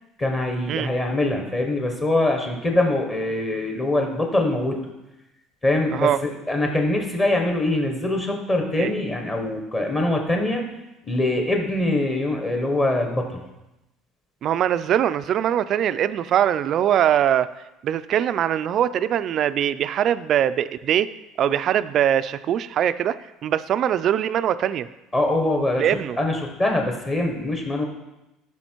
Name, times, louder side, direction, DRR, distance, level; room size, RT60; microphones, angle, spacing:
voice 1, 0.2-4.8 5.6-10.6 11.1-13.4 25.1-25.9 26.2-27.9, left 1 dB, 20° left, 2 dB, 1.2 m, -23 dB
voice 2, 14.4-17.5 17.8-21.1 21.4-23.2 23.4-24.9 25.8-26.2, right 10 dB, 40° right, 14 dB, 0.4 m, -22 dB
13.5 x 5.7 x 4.6 m, 0.96 s
cardioid pair, 155°, 0 cm